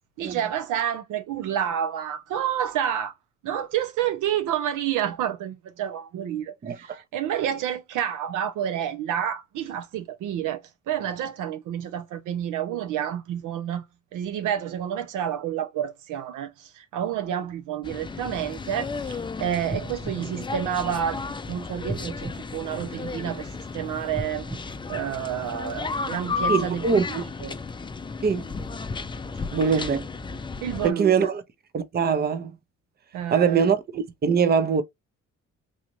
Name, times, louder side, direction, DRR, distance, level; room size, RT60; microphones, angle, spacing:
voice 1, 0.2-3.1 3.4-13.8 14.1-26.9 27.4-27.6 29.7-29.9 30.6-31.3 33.1-33.6, right 10 dB, 85° right, 0.8 m, -29 dB
voice 2, 6.6-7.0 26.5-27.2 28.2-28.5 29.5-30.1 30.8-31.4 31.7-32.5 33.3-34.8, right 6 dB, 30° right, 0.6 m, -23 dB
sound 1, 17.8-30.9, left 4 dB, 15° left, 0.4 m, -33 dB
sound 2, 19.7-21.3 21.8-23.4 24.1-25.8 26.3-26.4, right 1 dB, ahead, 0.9 m, -38 dB
4.0 x 2.4 x 3.1 m
cardioid pair, 90°, 30 cm